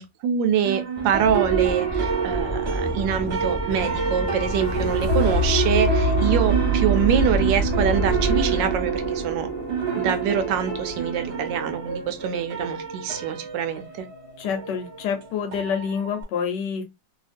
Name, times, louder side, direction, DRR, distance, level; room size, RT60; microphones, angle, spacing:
voice 1, 0.0-9.5 10.0-14.0, right 8 dB, 75° right, 1.2 m, -25 dB
sound 1, 0.6-16.2, right 6 dB, 40° right, 1.1 m, -28 dB
sound 2, 1.0-8.3, left 1 dB, 25° left, 0.4 m, -32 dB
sound 3, 4.2-12.3 12.8-12.9, equal, 50° left, 0.8 m, -26 dB
voice 2, 14.4-16.8, left 7 dB, 70° left, 1.3 m, -27 dB
2.8 x 2.7 x 2.4 m
omnidirectional pair, 2.1 m